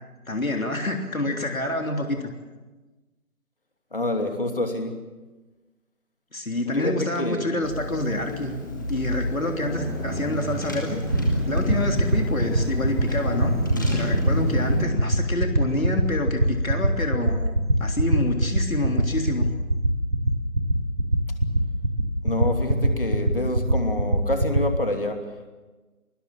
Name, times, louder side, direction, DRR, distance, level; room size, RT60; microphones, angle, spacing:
voice 1, 0.3-2.3 6.3-8.5 8.9-11.0 11.5-13.6 13.9-17.4 17.8-19.5, left 1 dB, 65° left, 3 dB, 3.4 m, -27 dB
voice 2, 3.9-5.0 6.7-7.6 22.2-25.5, left 1 dB, 35° left, 5 dB, 2.9 m, -27 dB
Car / Engine, 7.6-14.8, equal, 15° left, 2.2 m, -29 dB
sound 1, 11.1-24.6, right 1 dB, 55° right, 5.8 m, -21 dB
29.0 x 20.0 x 7.4 m, 1.2 s
figure-of-eight pair, 170°, 45 cm